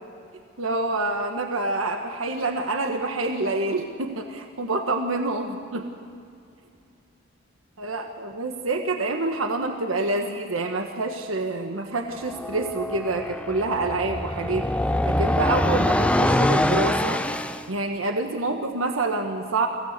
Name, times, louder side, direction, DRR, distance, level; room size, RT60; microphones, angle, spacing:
voice 1, 0.6-5.9 7.8-14.7 15.1-17.2 17.7-19.7, right 2 dB, 75° right, 4 dB, 1.4 m, -27 dB
sound 1, 12.2-17.7, left 1 dB, 5° left, 0.6 m, -24 dB
23.5 x 16.5 x 6.7 m, 2.5 s
head